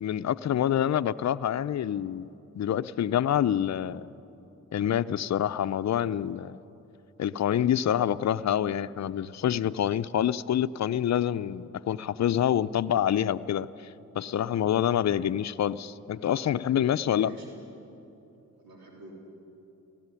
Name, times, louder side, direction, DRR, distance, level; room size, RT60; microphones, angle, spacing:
voice 1, 0.0-4.1 4.7-6.6 7.2-17.3, left 10 dB, 50° left, 15 dB, 0.6 m, -27 dB
voice 2, 16.1-17.6 18.6-19.1, right 2 dB, 80° right, -1 dB, 3.7 m, -48 dB
17.5 x 15.0 x 9.9 m, 2.9 s
supercardioid pair, 55°, 35 cm